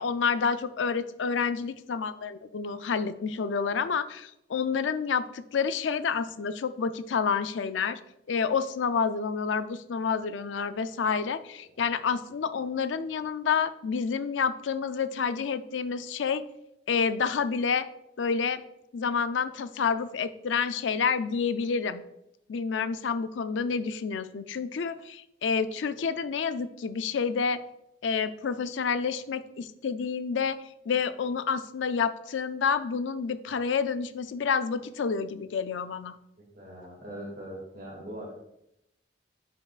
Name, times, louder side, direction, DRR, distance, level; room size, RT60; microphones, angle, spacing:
voice 1, 0.0-8.0 8.3-16.4 16.9-17.9 18.2-18.6 18.9-22.0 22.5-27.6 28.0-30.6 30.9-36.2, left 6 dB, 80° left, 12 dB, 0.4 m, -29 dB
voice 2, 36.5-38.3, equal, 50° right, -4 dB, 2.1 m, -41 dB
10.0 x 5.6 x 2.4 m, 0.81 s
head